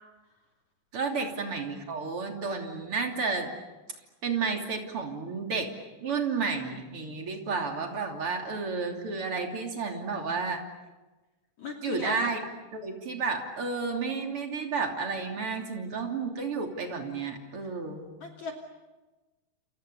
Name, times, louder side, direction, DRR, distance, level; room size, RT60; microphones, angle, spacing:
voice 1, 0.9-3.5 4.2-5.7 6.0-10.6 11.8-12.4 12.7-18.1, right 4 dB, 35° right, 3 dB, 3.3 m, -31 dB
voice 2, 11.6-12.1 18.2-18.5, left 4 dB, 45° left, 1 dB, 3.6 m, -37 dB
29.5 x 28.5 x 7.0 m, 1.2 s
omnidirectional pair, 5.2 m